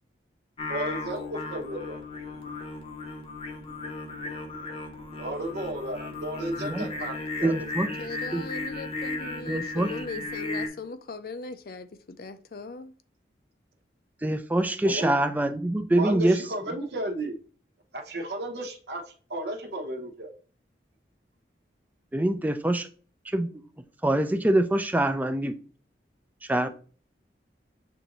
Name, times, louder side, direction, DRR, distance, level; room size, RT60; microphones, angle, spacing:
Singing, 0.6-10.7, left 3 dB, 30° left, 0.8 m, -35 dB
voice 1, 0.7-2.0 5.2-7.5 14.8-15.1 16.0-17.4 17.9-19.0 19.3-20.3, right 1 dB, 70° right, 0.8 m, -33 dB
voice 2, 7.4-8.1 8.3-8.4 9.5-10.0 14.2-16.4 22.1-22.9 23.3-23.5 24.0-25.6 26.5-26.7, right 1 dB, 10° right, 0.3 m, -25 dB
voice 3, 8.0-12.9, left 4 dB, 55° left, 0.4 m, -39 dB
6.8 x 2.6 x 2.9 m
head